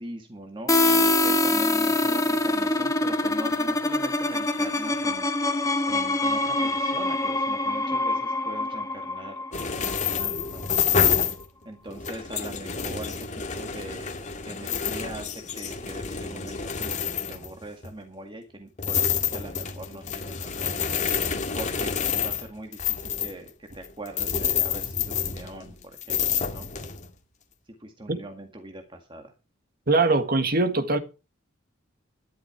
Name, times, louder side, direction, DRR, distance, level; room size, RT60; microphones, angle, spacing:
voice 1, 0.0-10.7 11.7-14.1 14.5-20.9 21.6-26.7 27.8-29.3, right 1 dB, 25° right, 1.9 m, -41 dB
sound 1, 0.7-10.3, left 2 dB, 15° left, 1.4 m, -24 dB
sound 2, 9.5-11.4 11.9-17.9 18.8-25.7 26.0-27.1, left 7 dB, 40° left, 2.0 m, -28 dB
voice 2, 29.9-31.0, right 3 dB, 50° right, 1.7 m, -22 dB
12.5 x 12.0 x 4.5 m
head